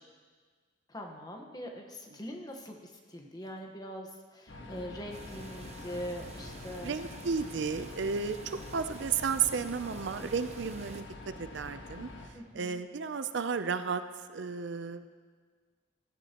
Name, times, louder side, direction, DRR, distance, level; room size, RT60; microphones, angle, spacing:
voice 1, 0.9-7.0 12.3-12.8, equal, 20° left, 3 dB, 1.2 m, -42 dB
sound 1, 4.5-12.3, left 2 dB, 65° left, 1.4 m, -46 dB
sound 2, 5.1-11.0, right 2 dB, 35° right, 0.9 m, -49 dB
voice 2, 6.8-11.0 11.4-12.1 12.5-14.0 14.3-15.1, right 6 dB, 65° right, 11 dB, 0.5 m, -33 dB
15.0 x 13.5 x 3.0 m, 1.5 s
head